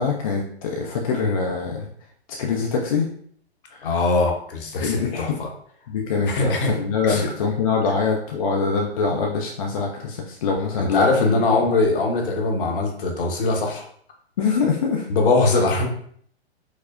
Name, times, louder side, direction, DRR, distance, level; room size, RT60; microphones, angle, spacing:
voice 1, 0.0-1.9 2.4-3.1 3.7-3.9 4.8-5.4 5.9-11.7 14.4-15.1, left 5 dB, 35° left, 0 dB, 0.4 m, -24 dB
voice 2, 3.8-5.5 6.3-6.7 7.0-7.3 10.8-13.8 15.1-15.9, left 3 dB, 55° left, 2 dB, 0.8 m, -21 dB
4.8 x 2.0 x 2.4 m, 0.62 s
figure-of-eight pair, 120°, 33 cm